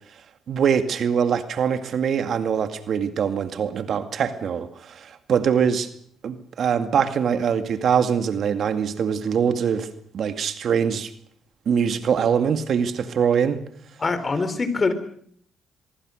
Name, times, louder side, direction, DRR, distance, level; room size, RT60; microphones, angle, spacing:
voice 1, 0.5-5.9 6.2-11.1 11.7-13.6, right 7 dB, 60° right, 2.2 m, -23 dB
voice 2, 14.0-14.9, left 4 dB, 35° left, 4.2 m, -23 dB
24.0 x 22.5 x 6.5 m
supercardioid pair, 60°, 0 cm